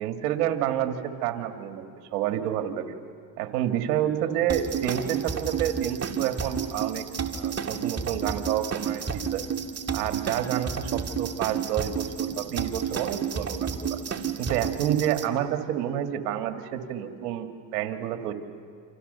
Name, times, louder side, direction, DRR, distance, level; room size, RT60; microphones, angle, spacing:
voice 1, 0.0-2.9 3.4-7.1 7.3-9.4 9.9-14.0 14.4-18.3, right 11 dB, 85° right, 6 dB, 2.0 m, -29 dB
sound 1, 4.5-15.3, right 6 dB, 35° right, 2.2 m, -31 dB
29.0 x 27.0 x 6.8 m, 2.2 s
supercardioid pair, 85°, 45 cm